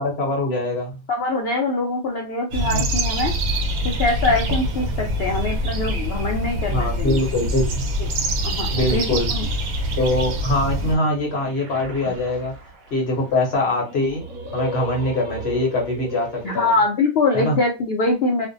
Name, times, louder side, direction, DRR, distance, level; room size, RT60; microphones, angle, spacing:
voice 1, 0.0-0.9 2.6-2.8 5.3-5.4 6.7-7.7 8.7-9.3 10.0-12.5 12.9-14.2 14.5-16.8 17.3-17.6, left 1 dB, 50° left, 0 dB, 0.9 m, -23 dB
voice 2, 1.1-3.3 3.8-7.2 8.4-9.0 9.3-9.5 16.4-18.5, left 3 dB, 70° left, 0 dB, 0.5 m, -23 dB
sound 1, 2.5-11.0, equal, 80° right, 1.1 m, -24 dB
sound 2, 8.5-8.8 10.1-16.7, right 1 dB, 65° right, 0.8 m, -36 dB
2.5 x 2.1 x 2.5 m, 0.28 s
omnidirectional pair, 1.5 m